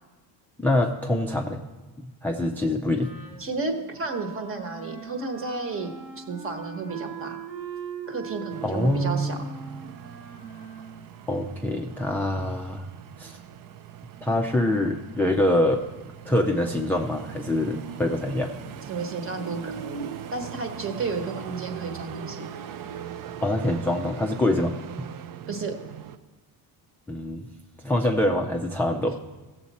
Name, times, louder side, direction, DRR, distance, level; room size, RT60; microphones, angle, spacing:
voice 1, 0.6-1.6 2.0-3.1 8.6-9.5 11.3-12.9 13.2-13.4 14.2-15.8 16.3-18.5 23.4-24.8 27.1-27.5 27.8-29.2, left 1 dB, 5° left, 2 dB, 0.3 m, -25 dB
Wind instrument woodwind instrument, 2.9-12.4, right 7 dB, 80° right, 1.7 m, -41 dB
voice 2, 3.4-7.4 8.1-9.4 18.9-22.5 25.5-25.7, right 3 dB, 35° right, 6 dB, 1.1 m, -32 dB
sound 1, 8.5-26.2, right 9 dB, 55° right, 0.6 m, -41 dB
15.5 x 7.2 x 4.1 m, 1.2 s
cardioid pair, 160°, 39 cm